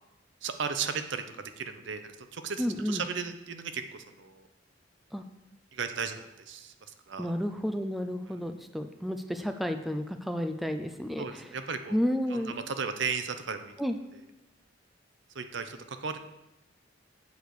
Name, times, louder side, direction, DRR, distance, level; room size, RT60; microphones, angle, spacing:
voice 1, 0.4-4.5 5.7-6.7 7.1-7.3 8.3-8.4 11.2-12.0 12.3-13.7 15.3-16.2, right 5 dB, 65° right, 8 dB, 0.7 m, -35 dB
voice 2, 2.6-3.0 5.1-5.2 7.2-11.5 11.9-12.6 13.8-14.0, equal, ahead, 6 dB, 0.4 m, -31 dB
8.2 x 4.8 x 6.7 m, 0.91 s
head